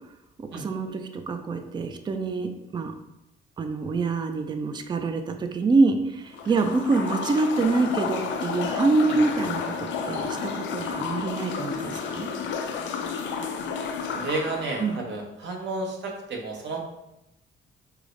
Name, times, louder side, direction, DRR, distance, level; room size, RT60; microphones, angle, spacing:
voice 1, 0.4-2.9 3.6-12.3 14.8-15.0, right 3 dB, 25° right, 6 dB, 0.3 m, -26 dB
sound 1, 6.3-15.0, left 6 dB, 70° left, 0.4 m, -31 dB
voice 2, 14.1-16.8, right 3 dB, 65° right, 0 dB, 0.8 m, -32 dB
4.7 x 2.0 x 2.5 m, 0.88 s
cardioid pair, 90°, 20 cm